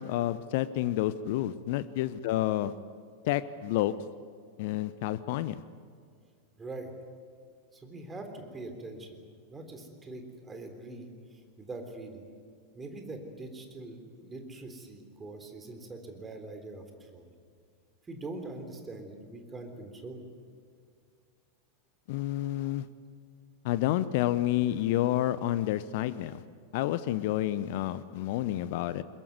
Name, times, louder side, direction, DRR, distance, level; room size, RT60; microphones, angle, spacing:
voice 1, 0.0-2.7 3.2-3.9 4.6-5.6 22.1-22.8 23.6-26.4 26.7-29.0, left 14 dB, 50° left, 16 dB, 0.7 m, -29 dB
voice 2, 6.6-6.9 7.7-9.2 9.5-12.2 12.7-17.3 18.0-20.3, right 2 dB, 15° right, 5 dB, 3.6 m, -43 dB
22.0 x 22.0 x 9.5 m, 2.2 s
figure-of-eight pair, 90°, 0 cm